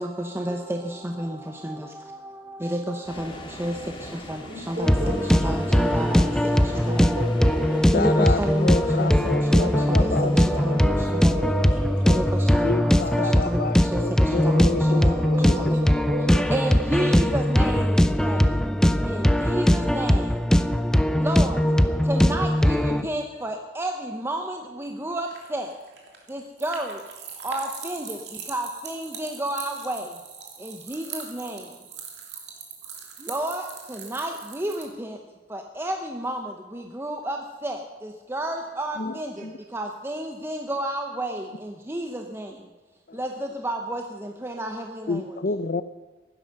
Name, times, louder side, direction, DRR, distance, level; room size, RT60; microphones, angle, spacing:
voice 1, 0.0-6.3 6.6-7.2 7.9-9.1 9.5-11.4 12.1-15.9 16.2-18.5 19.1-20.3 21.2-21.6 22.1-25.7 26.3-27.0 27.4-28.2 28.5-30.1 30.6-31.6 33.2-35.2 35.5-39.3 39.7-42.5 43.1-45.4, right 1 dB, 15° right, 3 dB, 0.9 m, -31 dB
sound 1, 3.0-20.0, left 1 dB, 30° left, 1.8 m, -44 dB
voice 2, 4.5-8.0 9.5-12.4 14.2-17.4, right 1 dB, 45° right, 2 dB, 3.2 m, -33 dB
Angel-techno pop music loop., 4.8-23.0, equal, 5° left, 0.5 m, -20 dB
voice 3, 7.9-10.8 12.6-15.7 39.0-39.1 39.4-39.5 43.1-43.2 45.1-45.8, left 3 dB, 55° left, 14 dB, 0.6 m, -29 dB
sound 2, 24.8-34.8, right 6 dB, 75° right, 2.9 m, -41 dB
16.0 x 11.5 x 6.7 m, 1.2 s
head